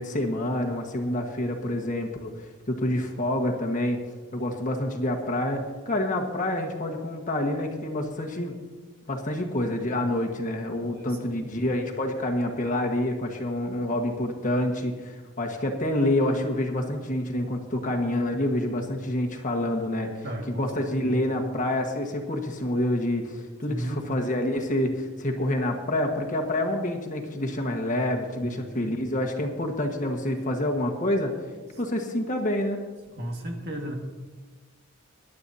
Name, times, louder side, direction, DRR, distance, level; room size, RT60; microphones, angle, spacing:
voice 1, 0.0-2.3 2.7-4.0 4.3-8.5 9.1-31.3 31.8-32.8, left 1 dB, 40° left, 3 dB, 1.5 m, -27 dB
voice 2, 10.8-11.6 20.2-20.7 21.0-21.2 23.7-24.0 28.4-28.9 33.1-33.9, right 1 dB, 50° right, 2 dB, 1.8 m, -35 dB
22.0 x 11.5 x 2.8 m, 1.3 s
head